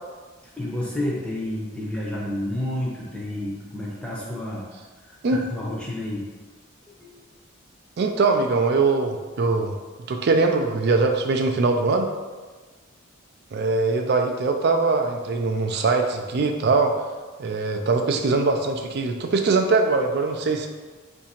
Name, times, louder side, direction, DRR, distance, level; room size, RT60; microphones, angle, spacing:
voice 1, 0.6-4.7 5.0-6.3 6.9-7.2, left 1 dB, 5° left, -5 dB, 0.6 m, -30 dB
voice 2, 8.0-9.7 10.1-12.1 13.5-16.9 17.4-20.7, right 3 dB, 50° right, 4 dB, 0.4 m, -22 dB
2.8 x 2.6 x 4.2 m, 1.3 s
head